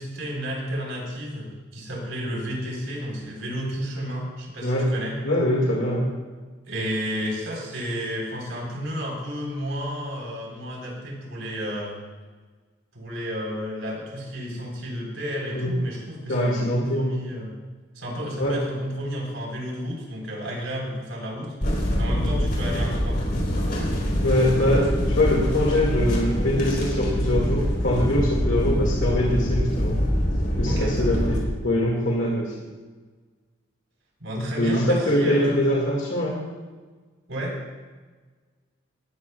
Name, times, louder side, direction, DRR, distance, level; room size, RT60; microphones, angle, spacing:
voice 1, 0.0-5.2 6.7-11.9 12.9-17.5 17.9-21.5 22.0-23.4 30.7-31.0 34.2-35.7 37.3-37.6, equal, 75° right, -2 dB, 4.2 m, -32 dB
voice 2, 5.2-6.1 15.5-15.7 16.3-17.1 18.4-18.6 24.2-30.0 30.6-32.5 34.3-36.4, left 1 dB, 70° left, -4 dB, 2.2 m, -23 dB
sound 1, 21.6-31.4, equal, 50° left, 4.0 m, -24 dB
19.0 x 13.5 x 2.4 m, 1.4 s
head